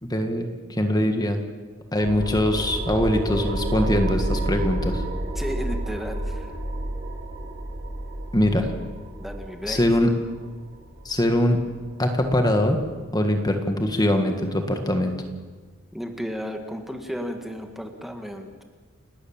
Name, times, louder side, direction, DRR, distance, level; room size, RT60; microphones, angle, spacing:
voice 1, 0.0-1.4 1.9-5.0 8.3-8.7 9.7-10.1 11.1-11.6 12.0-12.8 13.1-15.1, left 1 dB, 20° left, 5 dB, 1.8 m, -22 dB
sound 1, 2.0-13.0, right 1 dB, 50° right, 7.1 m, -30 dB
voice 2, 5.4-6.6 9.1-9.8 15.9-18.6, equal, ahead, 4 dB, 1.8 m, -33 dB
29.5 x 13.0 x 8.9 m, 1.4 s
head